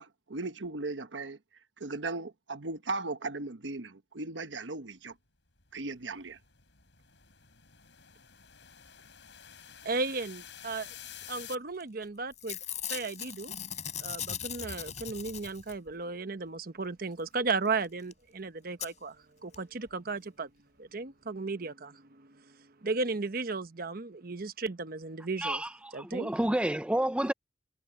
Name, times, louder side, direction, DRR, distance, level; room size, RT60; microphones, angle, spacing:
voice 1, 0.0-1.4 1.8-5.1 5.7-6.4, right 3 dB, 80° right, 1.2 m, -37 dB
sound 1, 5.6-11.6, left 10 dB, 75° left, 4.9 m, -50 dB
voice 2, 9.8-10.9 11.3-12.6 12.9-13.5 14.0-19.2 19.4-20.5 20.8-25.6 25.9-26.3, right 3 dB, 55° right, 1.0 m, -35 dB
Packing tape duct tape / Tearing, 11.8-12.1 12.3-15.9 17.8-17.9 18.1-18.2 18.8-18.9 19.5-19.6 19.9-20.0, left 9 dB, 40° left, 5.1 m, -39 dB
voice 3, 25.4-27.3, right 1 dB, 5° right, 0.5 m, -30 dB
head